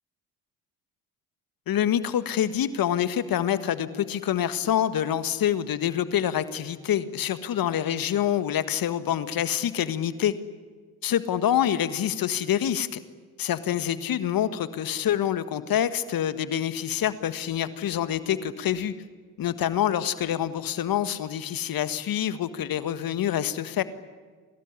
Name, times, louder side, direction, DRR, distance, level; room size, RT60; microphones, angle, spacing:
voice 1, 1.7-10.3 11.0-13.0 13.4-18.9 19.4-23.8, left 10 dB, 55° left, 13 dB, 1.7 m, -26 dB
26.5 x 19.0 x 10.0 m, 1.5 s
hypercardioid pair, 65°, 41 cm